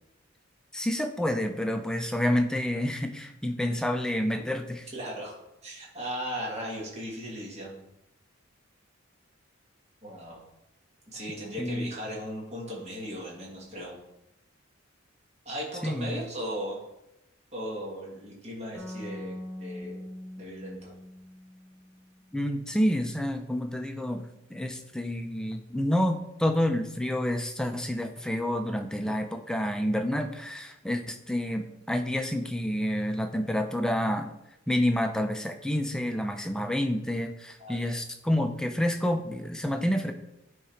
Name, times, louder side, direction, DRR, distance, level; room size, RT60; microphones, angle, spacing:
voice 1, 0.7-4.8 11.6-11.9 15.8-16.2 22.3-34.3 34.7-40.1, left 1 dB, 5° left, 6 dB, 0.4 m, -29 dB
voice 2, 4.9-5.3 5.6-7.8 10.0-10.4 11.1-13.9 15.5-16.8 17.5-20.0 20.4-20.9 37.6-37.9, equal, 30° right, -3 dB, 1.7 m, -37 dB
sound 1, 18.7-22.2, left 1 dB, 50° right, 1.8 m, -42 dB
9.8 x 3.7 x 4.4 m, 0.87 s
head